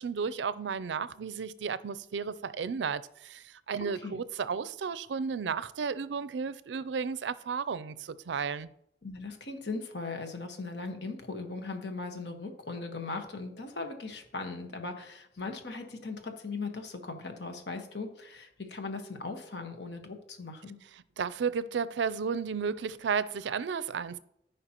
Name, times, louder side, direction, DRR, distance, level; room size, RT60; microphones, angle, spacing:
voice 1, 0.0-8.7 21.2-24.2, right 6 dB, 85° right, 0.4 m, -33 dB
voice 2, 3.8-4.2 9.0-20.8, left 3 dB, 75° left, 1.3 m, -39 dB
14.0 x 5.2 x 3.0 m
head